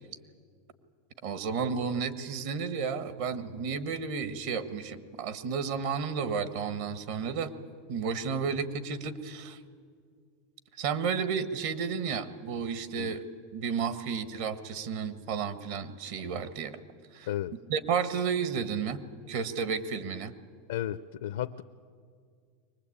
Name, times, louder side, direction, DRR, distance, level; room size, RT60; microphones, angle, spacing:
voice 1, 1.2-7.5 7.9-9.6 10.8-13.2 13.5-16.8 17.1-17.3 17.7-19.0 19.3-20.3, right 6 dB, 65° right, 12 dB, 1.4 m, -32 dB
voice 2, 20.7-21.6, left 12 dB, 85° left, 10 dB, 0.6 m, -33 dB
23.5 x 19.5 x 8.7 m, 2.1 s
supercardioid pair, 125°, 0 cm